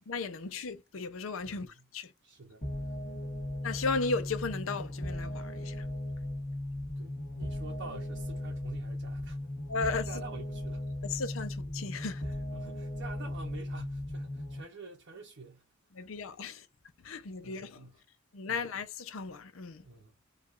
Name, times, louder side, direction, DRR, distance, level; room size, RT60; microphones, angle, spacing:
voice 1, 0.1-2.1 3.6-5.9 9.7-10.2 11.0-12.2 15.9-16.7 17.0-17.9 18.3-19.9, left 4 dB, 75° left, 0.6 m, -35 dB
voice 2, 1.4-1.9 2.2-2.9 3.2-3.4 7.0-9.4 10.0-10.8 12.2-15.6 16.0-16.1 17.4-17.9 18.5-18.6 19.8-20.1, right 3 dB, 60° right, 0.7 m, -48 dB
sound 1, 2.6-14.6, left 1 dB, 40° left, 1.3 m, -37 dB
4.5 x 2.4 x 2.4 m
head